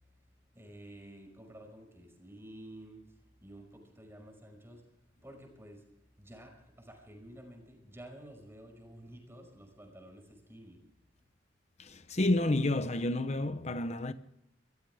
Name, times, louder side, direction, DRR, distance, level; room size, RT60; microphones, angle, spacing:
voice 1, 0.5-5.9 6.2-10.8, right 1 dB, 15° right, 5.4 m, -51 dB
voice 2, 11.8-14.1, left 2 dB, 40° left, 0.9 m, -30 dB
25.0 x 15.0 x 3.5 m
head